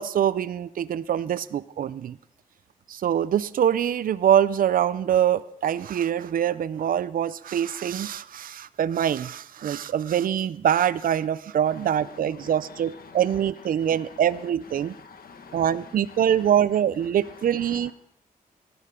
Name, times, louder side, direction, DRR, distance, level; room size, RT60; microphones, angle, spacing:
voice 1, 0.0-2.2 2.9-14.9 15.5-17.9, right 9 dB, 70° right, 17 dB, 0.4 m, -24 dB
voice 2, 11.7-14.2 14.7-16.5 17.2-17.9, left 5 dB, 80° left, 7 dB, 1.5 m, -48 dB
18.5 x 11.0 x 3.7 m, 0.74 s
wide cardioid pair, 145°, 15 cm